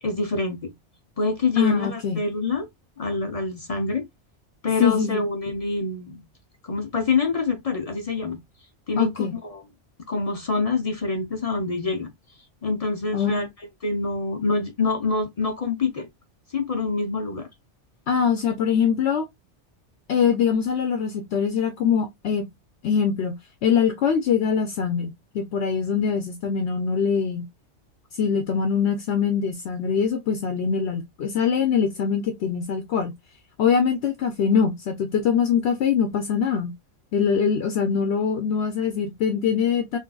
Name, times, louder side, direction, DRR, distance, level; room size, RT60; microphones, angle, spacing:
voice 1, 0.0-0.7 1.2-2.7 3.0-4.1 4.6-6.2 6.6-8.4 8.9-9.6 10.1-12.1 12.6-13.5 13.8-16.1 16.5-17.5, left 3 dB, 45° left, 0.5 m, -26 dB
voice 2, 1.6-2.2 4.8-5.3 9.0-9.3 13.1-13.4 18.1-19.3 20.1-22.5 22.8-27.5 28.1-33.1 33.6-36.7 37.1-40.0, left 7 dB, 70° left, 0.9 m, -23 dB
3.7 x 2.5 x 2.2 m
omnidirectional pair, 1.2 m